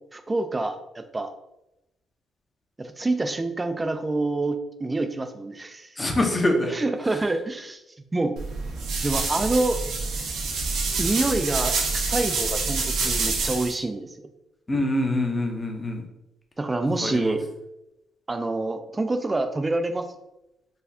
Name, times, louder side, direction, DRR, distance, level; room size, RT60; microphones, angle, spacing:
voice 1, 0.1-1.3 2.8-5.9 6.6-7.8 8.1-8.4 9.0-9.8 11.0-14.1 16.6-17.5 18.3-20.1, right 2 dB, 20° right, 8 dB, 0.4 m, -27 dB
voice 2, 6.0-6.7 14.7-16.0 17.0-17.3, left 1 dB, 25° left, 3 dB, 0.7 m, -24 dB
sound 1, 8.4-13.7, right 4 dB, 75° right, 0.6 m, -27 dB
4.1 x 2.3 x 2.7 m, 0.89 s
cardioid pair, 90°, 0 cm